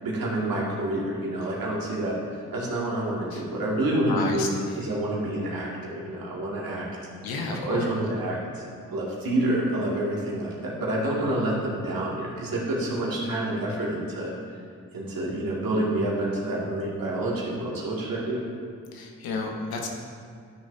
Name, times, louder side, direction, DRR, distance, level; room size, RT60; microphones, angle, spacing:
voice 1, 0.0-4.5 4.8-6.9 7.5-14.3 14.9-18.4, right 1 dB, 70° right, -5 dB, 2.2 m, -28 dB
voice 2, 4.1-4.9 7.2-7.9 18.9-19.9, left 3 dB, 85° left, 1 dB, 1.0 m, -32 dB
12.0 x 6.5 x 2.7 m, 2.1 s
supercardioid pair, 40°, 36 cm